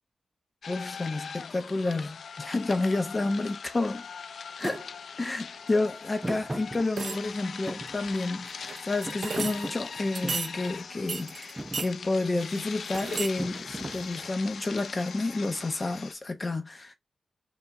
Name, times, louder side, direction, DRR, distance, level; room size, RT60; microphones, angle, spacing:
sound 1, 0.6-16.1, left 6 dB, 85° left, 0.4 m, -41 dB
voice 1, 0.7-4.1 4.6-4.9 5.2-16.9, left 2 dB, 30° left, 0.9 m, -30 dB
Thump thud, 4.6-4.8 6.2-7.3 7.7-8.7 9.1-10.5 11.1-11.3 11.6-11.9 13.4-14.5, right 1 dB, 15° right, 0.7 m, -38 dB
sound 2, 4.6-5.0 6.4-6.5 6.9-7.5 8.5-9.7 10.1-10.6 11.1-11.9 12.4-13.4 13.7-14.4 14.8-14.9, right 5 dB, 80° right, 0.7 m, -36 dB
5.2 x 2.6 x 3.1 m
wide cardioid pair, 135°, 0 cm